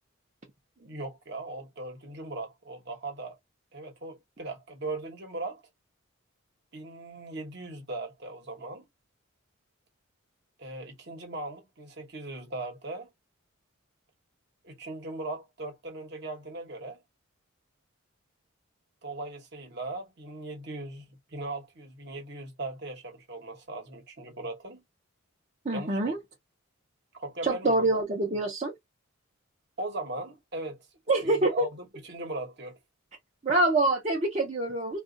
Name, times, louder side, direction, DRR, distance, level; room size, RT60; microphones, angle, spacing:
voice 1, 0.8-3.4 3.7-5.6 6.7-8.8 10.6-13.1 14.6-17.0 19.0-24.8 25.7-26.1 27.1-27.9 29.8-30.9 31.2-32.8, right 2 dB, 50° right, 1.1 m, -39 dB
voice 2, 25.6-26.2 27.4-28.7 31.1-31.7 33.4-35.0, right 2 dB, 30° right, 0.7 m, -25 dB
2.4 x 2.4 x 3.8 m
head